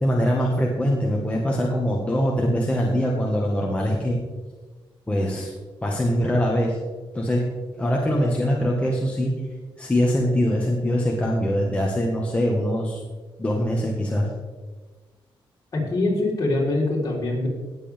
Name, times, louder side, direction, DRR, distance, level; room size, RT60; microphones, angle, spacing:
voice 1, 0.0-4.2 5.1-5.5 5.8-6.8 7.1-7.4 7.8-9.4 9.8-13.0 13.4-14.3, equal, 15° left, -2 dB, 1.6 m, -23 dB
voice 2, 15.7-17.5, left 2 dB, 40° left, -4 dB, 4.1 m, -23 dB
18.0 x 7.8 x 3.6 m, 1.3 s
cardioid pair, 120°, 9 cm